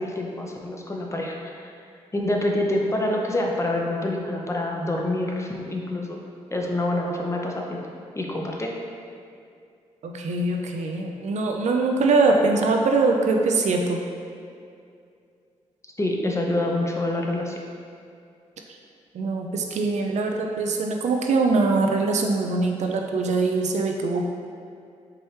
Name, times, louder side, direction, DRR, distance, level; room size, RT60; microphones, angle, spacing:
voice 1, 0.0-1.7 2.1-6.2 6.5-7.8 8.2-8.7 16.0-17.6, left 1 dB, 20° left, 0 dB, 0.7 m, -26 dB
voice 2, 10.0-14.0 19.1-24.2, right 3 dB, 65° right, 2 dB, 0.4 m, -22 dB
4.6 x 3.0 x 3.2 m, 2.4 s
supercardioid pair, 55°, 13 cm